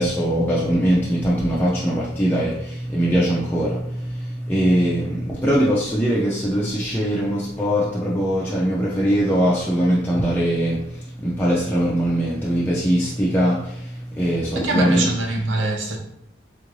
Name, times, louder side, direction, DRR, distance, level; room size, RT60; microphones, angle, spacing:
voice 1, 0.0-15.0, equal, 10° left, 0.4 m, -21 dB
voice 2, 14.5-16.0, right 2 dB, 80° right, 0.7 m, -23 dB
3.7 x 3.0 x 2.6 m
head